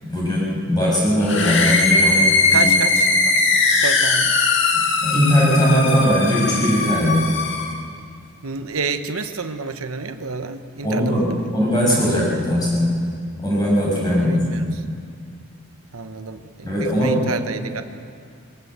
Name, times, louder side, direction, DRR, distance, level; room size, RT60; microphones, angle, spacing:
voice 1, 0.0-2.7 5.0-7.3 10.8-12.9 13.4-14.7 16.6-17.2, equal, 20° left, -5 dB, 7.6 m, -19 dB
sound 1, 1.2-7.8, left 3 dB, 55° left, 2.0 m, -19 dB
voice 2, 2.5-4.4 8.4-11.5 14.1-14.8 15.9-17.8, right 4 dB, 80° right, 8 dB, 1.1 m, -30 dB
22.0 x 19.0 x 8.2 m, 2.2 s
head